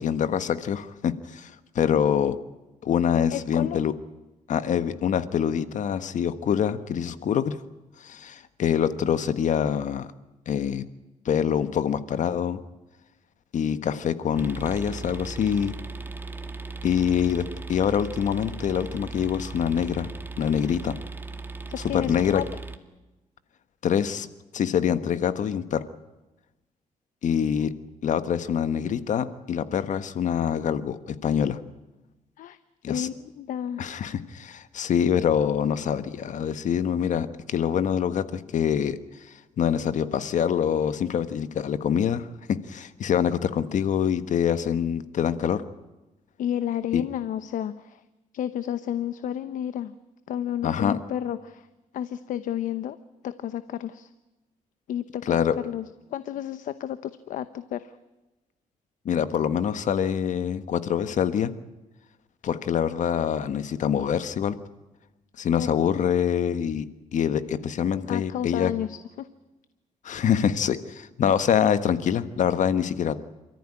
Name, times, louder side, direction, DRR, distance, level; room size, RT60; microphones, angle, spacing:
voice 1, 0.0-2.4 2.8-3.9 4.5-7.6 8.0-10.1 10.5-10.8 11.2-12.6 13.5-15.7 16.8-17.4 17.7-20.1 20.4-20.9 21.9-22.4 23.8-24.3 24.5-25.8 27.2-27.7 28.0-31.6 32.8-33.1 33.8-39.0 39.6-45.6 46.9-47.0 50.6-51.0 55.3-55.5 59.0-61.5 62.4-64.6 65.4-66.9 67.1-68.7 70.0-73.1, left 8 dB, 70° left, 13 dB, 1.5 m, -25 dB
voice 2, 3.3-3.8 21.7-22.4 32.4-32.6 32.9-33.9 46.4-48.0 48.3-49.9 50.3-51.7 51.9-53.0 53.2-54.1 54.9-55.4 55.6-55.8 56.1-57.9 65.5-65.7 68.1-69.3, left 10 dB, 85° left, 13 dB, 0.9 m, -31 dB
sound 1, 14.3-22.8, right 3 dB, 15° right, 2.2 m, -37 dB
28.0 x 14.0 x 10.0 m, 1.1 s
cardioid pair, 95°, 13 cm